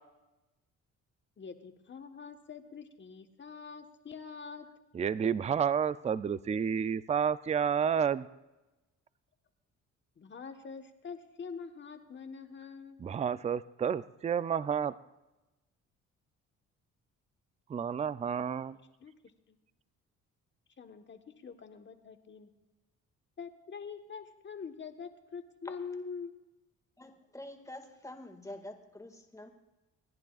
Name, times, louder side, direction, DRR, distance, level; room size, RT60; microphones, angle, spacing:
voice 1, 1.4-4.7 10.2-13.0 19.0-19.1 19.5-19.6 20.8-22.5 23.4-26.3, left 5 dB, 40° left, 7 dB, 1.3 m, -45 dB
voice 2, 4.9-8.3 13.0-14.9 17.7-18.8, right 7 dB, 25° right, 16 dB, 0.4 m, -30 dB
voice 3, 27.0-29.5, left 1 dB, 10° left, 3 dB, 1.9 m, -46 dB
27.5 x 11.0 x 2.4 m, 1.0 s
cardioid pair, 90°, 30 cm